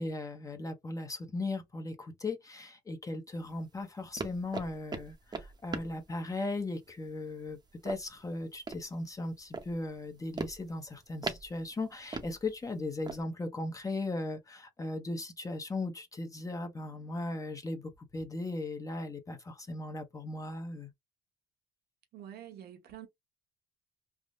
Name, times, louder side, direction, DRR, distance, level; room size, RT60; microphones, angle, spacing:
voice 1, 0.0-20.9, left 2 dB, 20° left, 0.7 m, -37 dB
sound 1, 3.3-13.2, right 4 dB, 25° right, 0.7 m, -42 dB
voice 2, 22.1-23.1, right 10 dB, 70° right, 1.1 m, -47 dB
3.4 x 2.0 x 2.5 m
cardioid pair, 110°, 17 cm